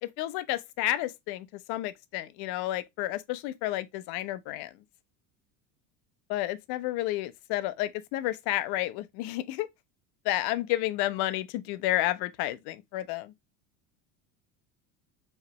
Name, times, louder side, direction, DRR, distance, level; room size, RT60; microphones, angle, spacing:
voice 1, 0.0-4.7 6.3-9.7 10.2-13.3, left 15 dB, 55° left, 0.7 m, -31 dB
4.6 x 3.3 x 3.0 m
hypercardioid pair, 85°, 47 cm